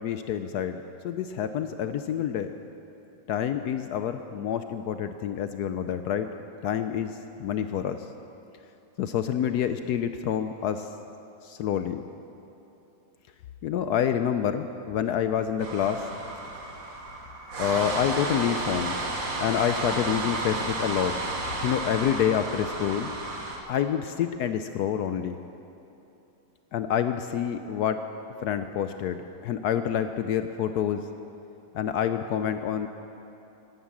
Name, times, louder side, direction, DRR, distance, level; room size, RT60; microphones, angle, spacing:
voice 1, 0.0-2.5 3.3-6.3 6.6-8.1 9.0-10.9 11.4-12.0 13.6-16.1 17.6-19.0 19.4-21.2 21.6-23.1 23.7-25.4 26.7-28.1 28.4-31.1 31.7-32.9, left 9 dB, 70° left, 9 dB, 1.0 m, -27 dB
sound 1, 15.6-23.6, right 2 dB, 80° right, 2.4 m, -32 dB
13.0 x 11.5 x 8.4 m, 2.9 s
omnidirectional pair, 2.0 m